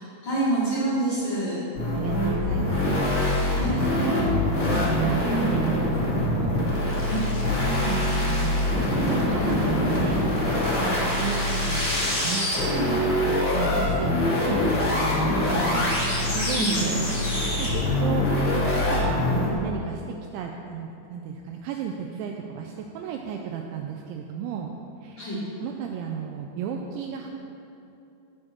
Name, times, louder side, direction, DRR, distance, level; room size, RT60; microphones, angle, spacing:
voice 1, 0.2-1.6 3.5-3.8 7.1-7.2 10.8-11.0 15.1-15.9 16.5-16.8 25.2-25.4, right 2 dB, 75° left, -10 dB, 1.0 m, -27 dB
sound 1, 1.7-19.5, left 1 dB, 20° left, 1.7 m, -24 dB
voice 2, 1.9-3.4 3.7-6.7 7.8-10.2 10.8-11.9 12.2-14.7 16.3-18.3 18.5-20.0 20.3-24.7 25.0-25.2 25.6-27.4, right 7 dB, 85° right, 2 dB, 2.7 m, -33 dB
15.5 x 6.6 x 4.3 m, 2.8 s
omnidirectional pair, 5.7 m